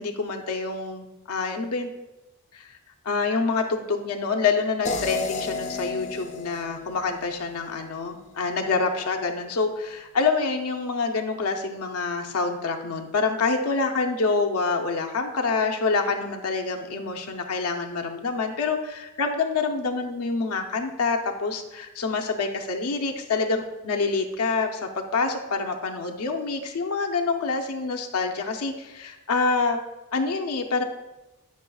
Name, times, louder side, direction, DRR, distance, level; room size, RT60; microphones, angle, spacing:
voice 1, 0.0-1.9 2.5-2.8 3.0-29.8 30.1-30.8, left 4 dB, 80° left, 4 dB, 0.6 m, -26 dB
sound 1, 4.8-7.9, left 4 dB, 35° left, 0.5 m, -33 dB
9.2 x 5.4 x 2.3 m, 1.0 s
head